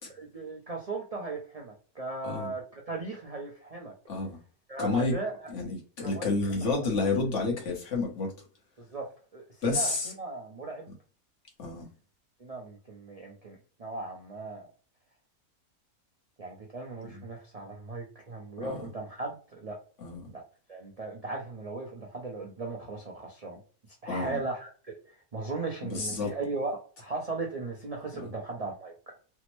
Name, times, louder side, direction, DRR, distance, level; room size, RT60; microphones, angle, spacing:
voice 1, 0.1-3.9 4.7-5.5 6.0-6.9 8.8-10.9 12.4-14.7 16.4-19.8 20.3-20.4 20.7-23.6 24.0-28.9, right 3 dB, 45° right, 0.4 m, -37 dB
voice 2, 4.1-4.4 4.8-5.1 5.5-8.3 9.6-10.1 11.6-11.9 18.6-18.9 20.0-20.3 24.1-24.4 25.9-26.3 28.2-28.3, left 3 dB, 55° left, 1.2 m, -30 dB
3.4 x 2.0 x 3.0 m
omnidirectional pair, 1.6 m